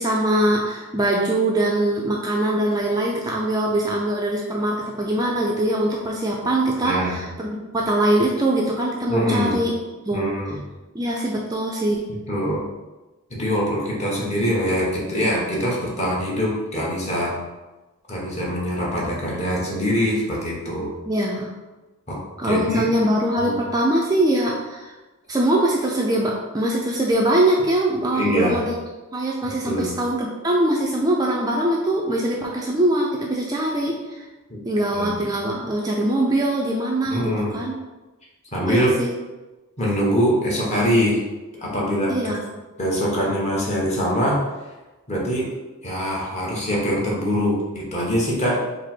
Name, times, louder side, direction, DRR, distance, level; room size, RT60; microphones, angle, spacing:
voice 1, 0.0-9.7 10.1-10.3 10.9-12.1 21.1-21.5 22.4-24.9 25.3-28.8 29.1-34.2 34.6-37.7 38.6-39.1 42.1-42.5, right 1 dB, 20° right, -2 dB, 0.4 m, -22 dB
voice 2, 6.8-7.2 9.1-9.6 10.1-10.6 12.3-12.6 13.3-17.4 18.1-20.9 22.1-22.2 22.4-22.8 23.4-23.5 28.1-28.6 29.6-29.9 34.5-34.6 34.9-35.2 37.1-37.5 38.5-38.9 39.8-41.2 41.5-42.3 42.8-44.4 45.1-45.5 45.8-48.6, equal, 30° left, -4 dB, 1.1 m, -23 dB
4.9 x 2.0 x 4.3 m, 1.1 s
head